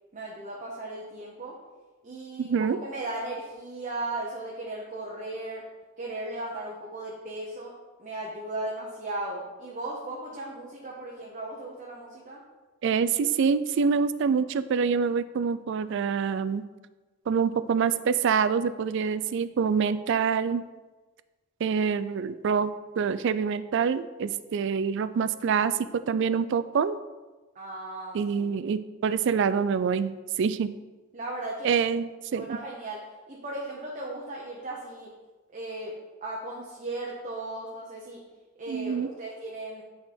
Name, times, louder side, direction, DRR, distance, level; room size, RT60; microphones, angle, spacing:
voice 1, 0.1-1.6 2.0-5.6 6.0-7.7 8.0-12.4 27.5-28.6 31.1-31.7 32.3-33.0 33.3-35.1 35.5-36.0 36.2-38.2 38.6-39.8, right 2 dB, 40° right, -3 dB, 0.9 m, -36 dB
voice 2, 2.4-2.8 12.8-16.6 17.3-20.6 21.6-22.7 23.0-25.8 26.1-27.0 28.1-30.7 31.6-32.6 38.7-39.1, right 6 dB, 60° right, 14 dB, 0.3 m, -26 dB
8.7 x 3.7 x 4.3 m, 1.2 s
head